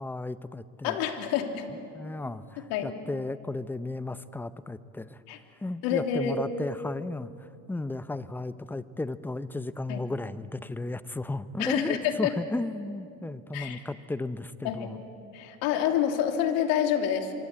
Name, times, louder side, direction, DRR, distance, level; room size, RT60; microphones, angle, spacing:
voice 1, 0.0-1.0 1.9-15.0, left 2 dB, 5° left, 14 dB, 0.7 m, -34 dB
voice 2, 0.8-1.7 2.6-2.9 5.3-5.4 5.8-6.4 9.9-10.0 11.6-12.3 13.5-13.8 14.6-14.9 15.3-17.3, left 9 dB, 55° left, 4 dB, 3.3 m, -28 dB
26.0 x 24.5 x 8.6 m, 2.6 s
supercardioid pair, 115°, 41 cm